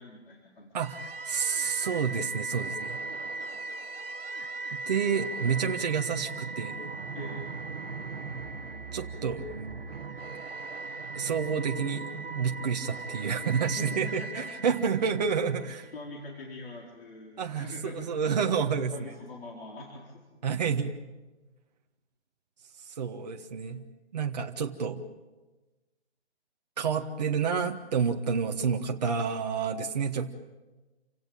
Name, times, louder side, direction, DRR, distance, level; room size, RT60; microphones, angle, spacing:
voice 1, 0.0-0.7 7.1-7.5 13.8-14.5 15.9-18.1 18.9-20.2, left 1 dB, 55° left, -1 dB, 4.6 m, -43 dB
voice 2, 0.7-3.0 4.7-6.8 8.9-9.8 11.1-12.1 12.3-15.8 17.4-19.1 20.4-21.0 22.9-23.8 24.1-25.0 26.8-30.3, right 6 dB, 35° right, 3 dB, 1.4 m, -29 dB
sound 1, 0.8-15.9, right 3 dB, 55° right, 1.5 m, -38 dB
28.5 x 17.0 x 9.0 m, 1.2 s
hypercardioid pair, 170°, 34 cm